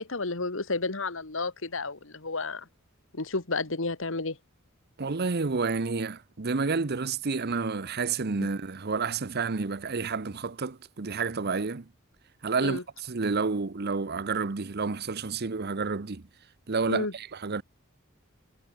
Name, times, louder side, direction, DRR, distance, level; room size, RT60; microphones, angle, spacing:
voice 1, 0.0-2.7 3.1-4.4 12.6-12.8 16.9-17.1, left 3 dB, 65° left, 2.0 m, -31 dB
voice 2, 5.0-11.9 12.4-16.2 16.7-17.6, right 4 dB, 50° right, 0.8 m, -30 dB
head